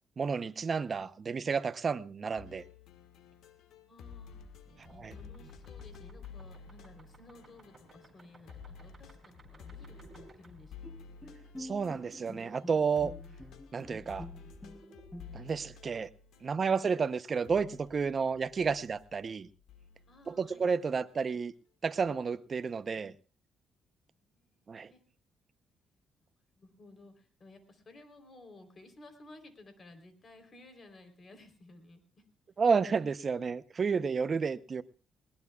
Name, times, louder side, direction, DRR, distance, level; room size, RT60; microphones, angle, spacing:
voice 1, 0.2-2.6 5.0-5.2 11.6-13.1 13.7-14.3 15.3-16.1 16.4-19.5 20.3-21.5 21.8-23.1 24.7-24.9 32.6-34.8, right 5 dB, 40° right, 0.8 m, -31 dB
sound 1, 2.4-8.2 8.5-17.1 17.4-20.6 21.9-22.2, left 6 dB, 80° left, 1.6 m, -52 dB
voice 2, 3.7-4.4 4.8-11.0 16.6-16.9 18.9-19.0 20.0-20.7 24.1-25.0 26.6-32.2, left 2 dB, 40° left, 3.6 m, -56 dB
sound 2, 4.6-12.5 13.8-15.1, right 3 dB, 25° right, 4.6 m, -59 dB
Bowed string instrument, 10.8-15.7, left 1 dB, 5° left, 0.7 m, -48 dB
20.5 x 19.5 x 2.4 m
cardioid pair, 90°, 0 cm